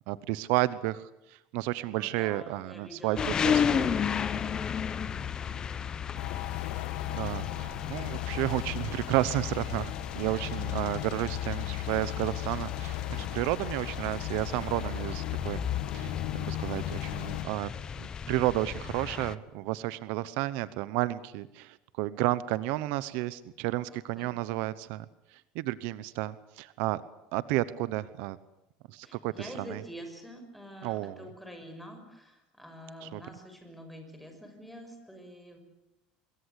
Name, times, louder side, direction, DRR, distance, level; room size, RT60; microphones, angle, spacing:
voice 1, 0.1-3.9 7.1-15.6 15.9-17.7 18.0-25.1 25.3-27.0 27.3-28.4 28.9-29.8 30.8-31.3 33.0-33.2, right 17 dB, 70° right, 16 dB, 1.0 m, -32 dB
voice 2, 1.9-3.2 3.5-6.5 23.9-24.3 29.0-35.6, equal, ahead, 5 dB, 6.0 m, -47 dB
sound 1, 3.2-19.3, left 8 dB, 25° left, 1.1 m, -34 dB
sound 2, 6.2-17.4, left 15 dB, 75° left, 1.5 m, -38 dB
26.0 x 22.5 x 8.3 m, 0.86 s
cardioid pair, 150°, 3 cm